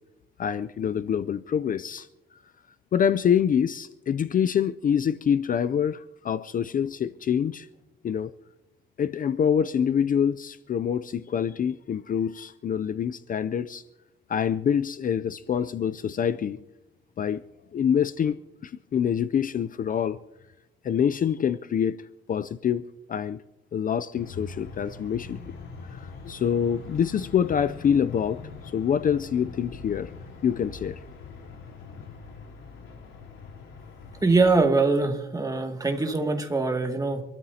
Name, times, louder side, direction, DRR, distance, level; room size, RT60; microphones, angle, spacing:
voice 1, 0.4-2.1 2.9-7.7 8.0-8.3 9.0-13.8 14.3-16.6 17.2-17.4 17.7-20.2 20.8-22.0 22.3-23.4 23.7-25.4 26.0-30.1 30.4-31.0, left 8 dB, 45° left, 0.5 m, -26 dB
sound 1, 24.1-34.6, left 4 dB, 75° left, 3.8 m, -42 dB
voice 2, 34.2-37.2, right 3 dB, 20° right, 2.3 m, -23 dB
27.0 x 13.0 x 2.8 m
cardioid pair, 90°, 20 cm